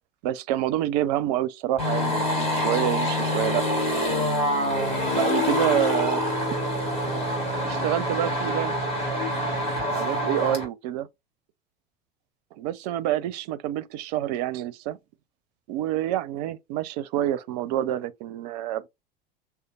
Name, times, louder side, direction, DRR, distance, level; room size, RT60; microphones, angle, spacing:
voice 1, 0.2-3.6 5.1-6.2 7.6-8.8 9.9-11.1 12.5-15.0 15.7-18.9, right 12 dB, 45° right, 0.5 m, -27 dB
sound 1, 1.8-10.6, left 1 dB, 20° left, 2.3 m, -26 dB
6.3 x 2.3 x 2.3 m
figure-of-eight pair, 80°, 29 cm